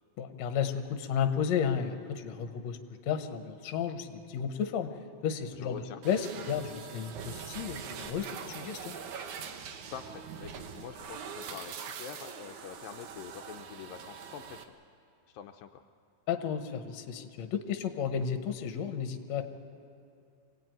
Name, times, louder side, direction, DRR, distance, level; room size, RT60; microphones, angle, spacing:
voice 1, 0.2-2.8 3.0-4.9 5.2-9.0 16.3-19.4, left 7 dB, 60° left, 7 dB, 2.1 m, -33 dB
voice 2, 5.5-6.0 9.9-14.7 15.3-15.8, left 9 dB, 80° left, 4 dB, 2.3 m, -45 dB
sound 1, 6.0-14.6, right 6 dB, 65° right, 2.3 m, -43 dB
25.5 x 18.0 x 9.2 m, 2.5 s
omnidirectional pair, 4.2 m